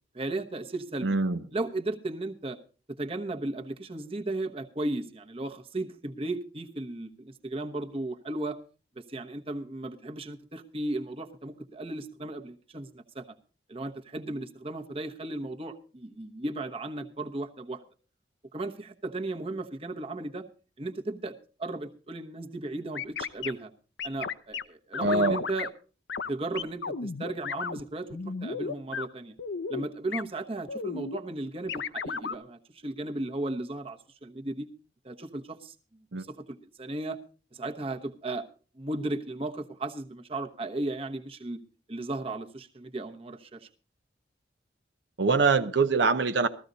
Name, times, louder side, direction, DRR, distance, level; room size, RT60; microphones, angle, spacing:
voice 1, 0.1-1.1 1.5-2.6 3.0-8.6 9.0-13.3 13.7-17.8 18.5-20.4 20.8-23.7 24.0-25.7 26.3-29.3 29.7-34.7 35.0-35.7 36.2-37.2 37.5-38.5 38.8-41.6 41.9-43.7, right 2 dB, 30° right, 1.1 m, -35 dB
voice 2, 1.0-1.4 25.0-25.4 36.1-36.2 45.2-46.5, right 4 dB, 70° right, 0.8 m, -24 dB
sound 1, 22.9-23.5 24.0-24.6 24.9-25.7 26.1-26.3 26.5-27.8 28.1-29.1 29.4-29.9 30.1-30.2 30.7-31.2 31.7-32.3, left 5 dB, 65° left, 0.7 m, -34 dB
15.0 x 14.0 x 4.0 m
head